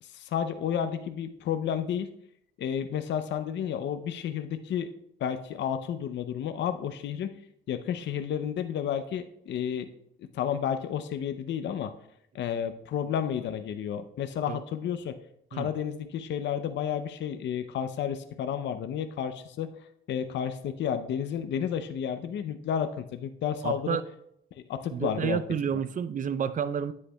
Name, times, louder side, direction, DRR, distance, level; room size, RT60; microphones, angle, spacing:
voice 1, 0.0-2.1 2.6-4.9 5.2-7.3 7.7-9.9 10.2-11.9 12.3-15.2 15.5-19.8 20.1-24.0 24.5-25.4, left 8 dB, 65° left, 8 dB, 0.5 m, -31 dB
voice 2, 23.6-24.0 24.9-26.9, right 7 dB, 40° right, 14 dB, 0.5 m, -30 dB
9.7 x 8.3 x 2.2 m, 0.75 s
cardioid pair, 90°, 20 cm